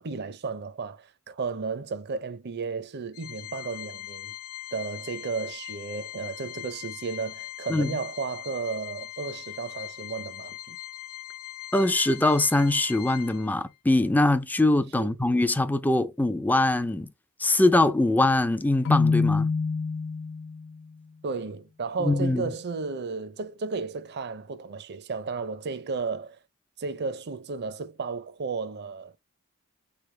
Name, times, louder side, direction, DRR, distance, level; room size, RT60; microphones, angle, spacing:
voice 1, 0.0-4.3 4.7-10.8 15.0-15.1 21.2-26.4 26.8-29.2, right 4 dB, 50° right, 0.6 m, -33 dB
Organ, 3.1-13.8, left 14 dB, 85° left, 0.9 m, -41 dB
voice 2, 11.7-17.1 17.4-19.5 22.0-22.5, left 2 dB, 10° left, 0.4 m, -23 dB
Keyboard (musical), 18.8-20.7, left 4 dB, 60° left, 0.6 m, -25 dB
4.2 x 3.4 x 3.2 m
head